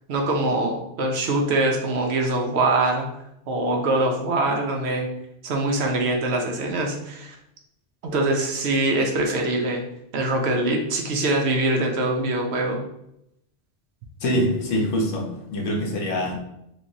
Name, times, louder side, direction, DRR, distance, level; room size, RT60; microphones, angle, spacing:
voice 1, 0.1-3.1 3.5-5.1 5.4-7.4 8.0-9.8 10.1-12.8, right 2 dB, 65° right, 1 dB, 0.8 m, -23 dB
voice 2, 14.2-16.6, equal, 90° left, 0 dB, 1.1 m, -25 dB
3.4 x 3.1 x 2.6 m, 0.81 s
omnidirectional pair, 1.2 m